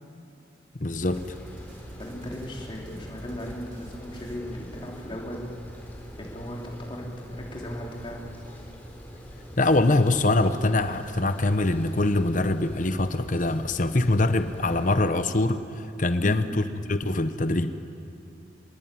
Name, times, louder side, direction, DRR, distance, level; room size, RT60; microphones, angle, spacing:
voice 1, 0.8-1.2 9.6-17.7, left 2 dB, 40° left, 10 dB, 0.9 m, -23 dB
sound 1, 0.9-5.2, equal, 80° right, 4.1 m, -49 dB
sound 2, 1.0-15.1, equal, 10° left, 4.0 m, -44 dB
voice 2, 2.0-5.5 6.2-8.2 16.2-16.5, equal, 25° left, -2 dB, 3.3 m, -37 dB
25.5 x 21.0 x 9.1 m, 2.7 s
head